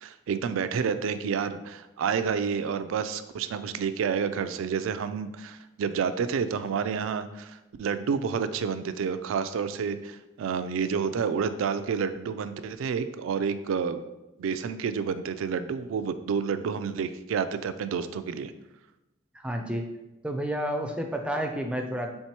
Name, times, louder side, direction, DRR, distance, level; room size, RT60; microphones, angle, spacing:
voice 1, 0.0-14.0 14.4-18.5, right 6 dB, 85° right, 11 dB, 0.3 m, -29 dB
voice 2, 19.3-19.9 20.2-22.1, equal, 5° right, 3 dB, 0.3 m, -30 dB
4.5 x 3.4 x 2.9 m, 0.97 s
head